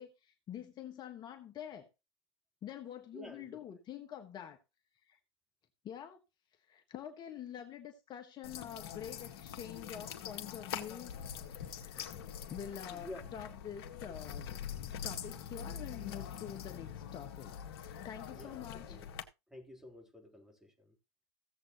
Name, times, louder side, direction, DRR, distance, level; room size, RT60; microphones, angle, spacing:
voice 1, 0.0-1.9 2.6-4.6 5.0-5.2 5.8-6.2 6.7-11.1 11.5-12.0 12.5-14.6 15.0-17.5 18.0-19.0, left 9 dB, 30° left, 1.4 m, -46 dB
voice 2, 3.1-3.8 12.9-13.3 18.3-18.6 18.9-19.1 19.5-20.9, left 1 dB, 5° right, 3.4 m, -50 dB
sound 1, 8.4-19.2, left 8 dB, 65° left, 1.8 m, -44 dB
16.5 x 8.0 x 3.0 m
hypercardioid pair, 105°, 14 cm